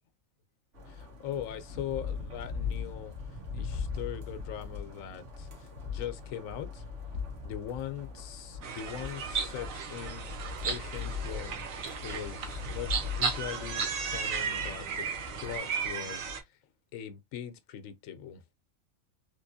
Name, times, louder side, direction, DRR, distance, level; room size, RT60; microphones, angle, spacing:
sound 1, 0.7-15.6, left 5 dB, 60° right, 1.7 m, -40 dB
voice 1, 0.9-6.8 7.4-10.3 10.6-11.6 12.0-16.3 16.9-18.4, left 9 dB, 75° left, 1.0 m, -41 dB
sound 2, 8.6-16.4, right 6 dB, 75° right, 1.2 m, -35 dB
3.6 x 2.9 x 2.6 m
omnidirectional pair, 1.4 m